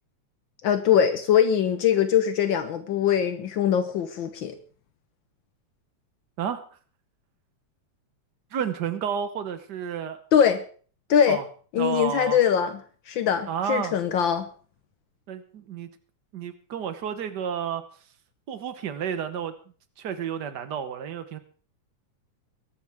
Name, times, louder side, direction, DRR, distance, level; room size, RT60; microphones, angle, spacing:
voice 1, 0.6-4.6 10.3-10.6 11.1-11.4 11.7-12.7 13.1-14.5, left 8 dB, 75° left, 9 dB, 1.1 m, -22 dB
voice 2, 8.5-10.2 11.3-11.4 11.8-12.4 13.5-14.0 15.3-15.9 16.3-17.8 18.5-19.5 20.0-21.4, right 8 dB, 70° right, 10 dB, 1.0 m, -31 dB
22.0 x 12.0 x 3.5 m, 0.42 s
omnidirectional pair, 3.3 m